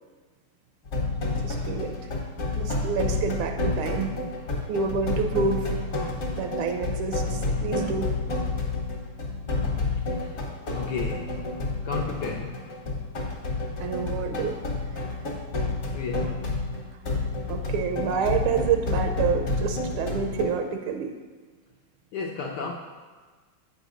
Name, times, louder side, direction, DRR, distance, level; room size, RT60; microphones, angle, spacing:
sound 1, 0.8-20.4, left 3 dB, 45° left, 1.3 m, -29 dB
voice 1, 1.4-2.1 2.5-4.1 4.7-5.7 6.4-8.1 13.8-14.6 17.0-21.1, right 6 dB, 80° right, 5 dB, 1.4 m, -28 dB
voice 2, 10.1-10.4 10.7-11.6 11.8-12.8 15.9-16.7 22.1-22.7, left 5 dB, 75° left, -1 dB, 0.9 m, -34 dB
8.1 x 4.0 x 5.0 m, 1.5 s
omnidirectional pair, 2.3 m